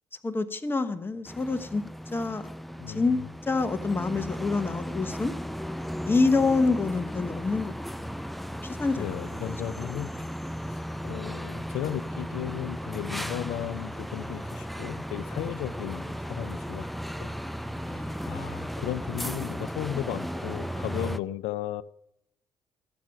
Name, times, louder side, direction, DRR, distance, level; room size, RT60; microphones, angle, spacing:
voice 1, 0.2-1.8 2.1-2.5 2.9-3.2 3.5-5.3 6.0-7.7 8.0-8.1 8.6-9.4 10.1-10.3 17.8-18.4, left 3 dB, 20° left, 0.9 m, -27 dB
sound 1, 1.3-21.2, equal, ahead, 0.5 m, -35 dB
voice 2, 9.0-10.1 10.7-10.8 11.0-16.9 17.2-17.3 18.2-21.8, left 12 dB, 90° left, 0.5 m, -35 dB
14.5 x 7.6 x 5.8 m
cardioid pair, 85°, 11 cm